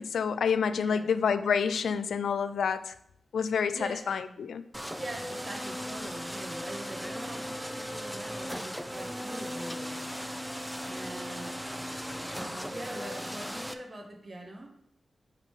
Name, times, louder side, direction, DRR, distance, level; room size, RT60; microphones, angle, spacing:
voice 1, 0.0-2.9 3.3-4.6, left 6 dB, 85° left, 13 dB, 0.4 m, -28 dB
voice 2, 0.7-1.1 3.7-4.4 4.8-10.1 10.8-11.5 12.4-14.7, right 1 dB, 40° right, 2 dB, 1.5 m, -43 dB
sound 1, 4.7-13.7, equal, 5° right, 0.7 m, -37 dB
7.5 x 3.8 x 4.8 m, 0.75 s
cardioid pair, 45°, 0 cm